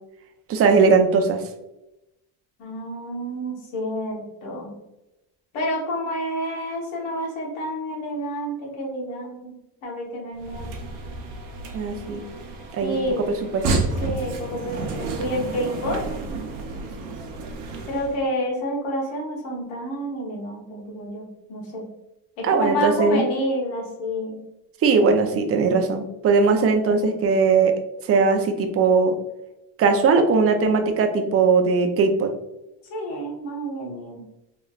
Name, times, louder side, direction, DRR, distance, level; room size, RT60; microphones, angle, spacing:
voice 1, 0.5-1.4 11.7-12.2 12.7-13.0 13.3-13.8 22.4-23.2 24.8-27.7 28.1-29.2 29.8-32.3, right 4 dB, 35° right, 5 dB, 0.4 m, -19 dB
voice 2, 2.6-4.7 5.5-9.5 9.8-10.7 12.8-13.3 14.0-16.0 17.9-21.9 22.4-24.4 32.9-34.2, equal, 80° left, -2 dB, 1.1 m, -29 dB
sound 1, 10.3-18.2, right 3 dB, 85° right, 0.8 m, -31 dB
3.1 x 3.0 x 2.3 m, 0.93 s
cardioid pair, 115°, 47 cm